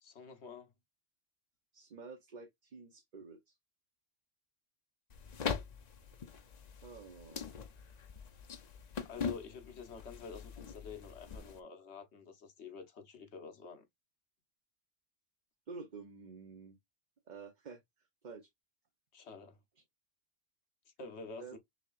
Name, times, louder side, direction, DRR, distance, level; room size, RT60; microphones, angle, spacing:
voice 1, 0.0-0.7 9.0-13.8 19.1-19.6 20.9-21.6, left 5 dB, 85° left, 1.3 m, -49 dB
voice 2, 1.7-3.5 6.8-7.5 15.7-16.8 17.3-17.8 18.2-18.5 21.4-21.6, right 4 dB, 45° right, 1.0 m, -49 dB
sound 1, 5.1-11.6, left 6 dB, 45° left, 0.7 m, -42 dB
6.2 x 2.9 x 2.4 m
omnidirectional pair, 1.1 m